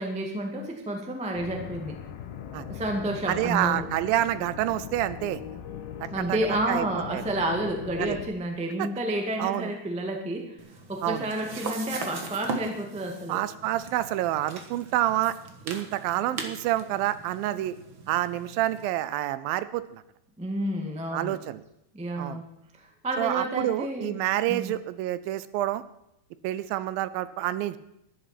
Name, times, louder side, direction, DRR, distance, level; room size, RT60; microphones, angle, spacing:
voice 1, 0.0-2.0 2.7-3.9 6.1-10.6 10.9-13.4 20.4-21.4 21.9-22.5 22.8-24.2 24.5-24.7, right 1 dB, 5° right, 2 dB, 0.6 m, -30 dB
sound 1, 1.4-8.3, left 8 dB, 85° left, 2.8 m, -40 dB
voice 2, 3.3-5.4 6.3-6.4 6.7-7.2 8.0-8.2 8.8-8.9 9.4-9.7 11.0-11.3 13.3-15.4 15.7-17.7 18.1-20.0 21.1-21.6 22.2-22.4 23.2-25.8 26.4-27.8, right 14 dB, 80° right, 15 dB, 2.4 m, -28 dB
sound 2, 10.6-18.9, right 4 dB, 55° right, 1.5 m, -40 dB
12.5 x 11.0 x 5.9 m, 0.81 s
omnidirectional pair, 4.2 m